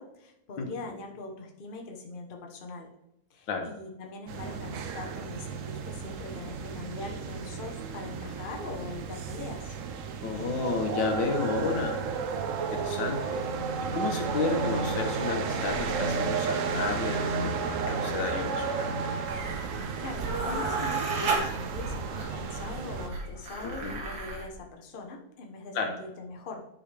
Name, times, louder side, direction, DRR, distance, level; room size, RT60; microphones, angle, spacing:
voice 1, 0.0-2.9 3.3-9.7 20.0-26.7, left 3 dB, 35° left, 1 dB, 1.0 m, -42 dB
voice 2, 0.6-0.9 3.5-3.7 10.2-12.0 12.7-13.4 13.8-18.9 23.6-24.0 25.7-26.0, left 4 dB, 75° left, 4 dB, 1.8 m, -32 dB
sound 1, 4.3-23.1, right 5 dB, 60° right, 0.8 m, -33 dB
sound 2, 19.3-24.4, right 3 dB, 90° right, 2.5 m, -33 dB
10.5 x 5.6 x 3.4 m, 0.83 s
omnidirectional pair, 2.1 m